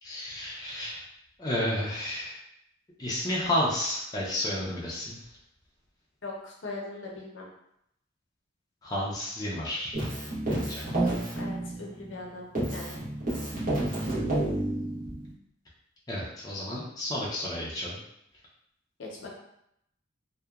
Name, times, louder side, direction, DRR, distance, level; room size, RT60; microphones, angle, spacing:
voice 1, 0.0-1.0 1.4-2.4 3.0-5.2 8.8-9.9 10.5-11.1 16.1-18.0, left 1 dB, 20° left, -6 dB, 0.4 m, -31 dB
voice 2, 6.2-7.5 11.0-13.0 19.0-19.3, left 2 dB, 70° left, -2 dB, 0.6 m, -40 dB
Keyboard (musical), 9.9-12.2 12.6-15.3, right 1 dB, 40° right, 0.9 m, -30 dB
2.8 x 2.1 x 2.3 m, 0.77 s
head